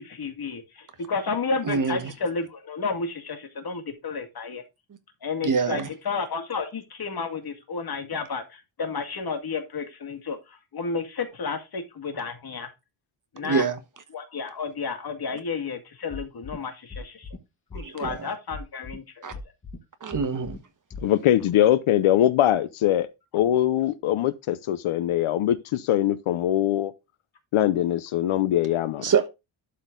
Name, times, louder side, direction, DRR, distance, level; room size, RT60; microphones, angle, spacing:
voice 1, 0.0-4.6 5.2-12.7 13.3-13.6 14.1-17.3 17.7-19.3, left 4 dB, 45° left, 2.1 m, -32 dB
voice 2, 1.6-2.1 5.4-5.9 13.4-13.8 17.8-18.3 19.2-19.3 20.0-20.6 29.0-29.3, right 5 dB, 40° right, 1.2 m, -25 dB
sound 1, 16.1-16.6 16.9-17.4 17.7-18.2 18.5-19.0 19.3-19.8 20.1-20.6 20.9-21.0, left 3 dB, 25° left, 1.8 m, -38 dB
voice 3, 21.0-23.1 23.3-26.9 27.5-29.0, left 12 dB, 75° left, 0.8 m, -22 dB
12.0 x 4.4 x 3.7 m
wide cardioid pair, 140°, 50 cm